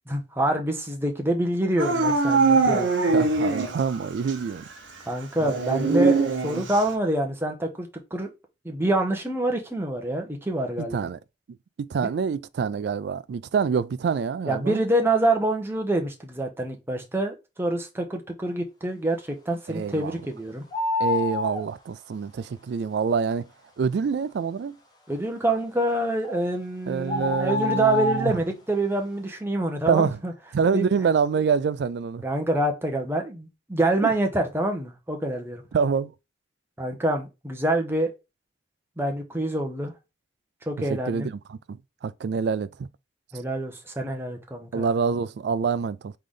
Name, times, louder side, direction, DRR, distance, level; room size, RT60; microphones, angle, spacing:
voice 1, 0.1-2.9 5.1-8.3 8.6-11.1 14.4-20.6 25.1-30.3 30.7-30.9 32.2-35.6 36.8-38.1 39.0-39.9 40.7-41.3 43.3-44.9, right 1 dB, 10° right, 0.8 m, -26 dB
Dog / Siren, 1.8-4.0 4.3-4.4 5.4-6.9, right 3 dB, 85° right, 0.9 m, -22 dB
voice 2, 3.1-4.7 10.8-11.2 11.8-14.8 19.7-20.1 21.0-23.5 23.8-24.8 26.9-28.4 29.9-30.2 30.5-32.2 34.0-34.1 35.7-36.1 41.1-42.9 44.7-46.1, right 5 dB, 60° right, 0.3 m, -26 dB
sound 1, 20.7-21.6 26.2-26.4 27.1-28.3, left 3 dB, 20° left, 1.0 m, -27 dB
3.9 x 3.3 x 3.7 m
head